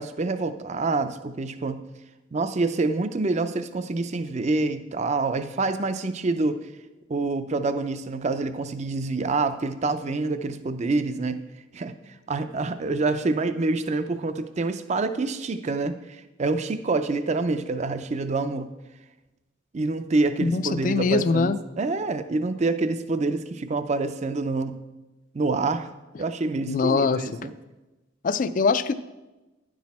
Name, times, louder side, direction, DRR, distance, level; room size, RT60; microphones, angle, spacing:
voice 1, 0.0-1.8 2.3-6.6 7.1-11.4 11.7-11.9 12.3-18.7 19.7-24.8 25.3-25.9 26.2-27.5, right 3 dB, 35° right, 10 dB, 0.4 m, -26 dB
voice 2, 20.4-21.6 26.7-27.3 28.2-28.9, left 4 dB, 40° left, 14 dB, 0.3 m, -23 dB
10.0 x 6.1 x 4.2 m, 1.1 s
head